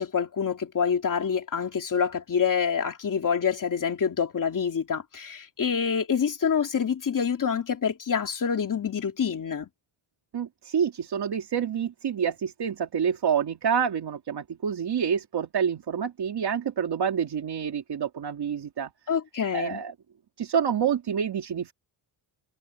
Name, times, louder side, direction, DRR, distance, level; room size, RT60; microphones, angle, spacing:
voice 1, 0.0-9.7 19.1-19.8, left 6 dB, 40° left, 3.0 m, -26 dB
voice 2, 10.3-18.9 19.5-19.9 20.4-21.7, right 7 dB, 55° right, 2.8 m, -27 dB
wide cardioid pair, 155°, 47 cm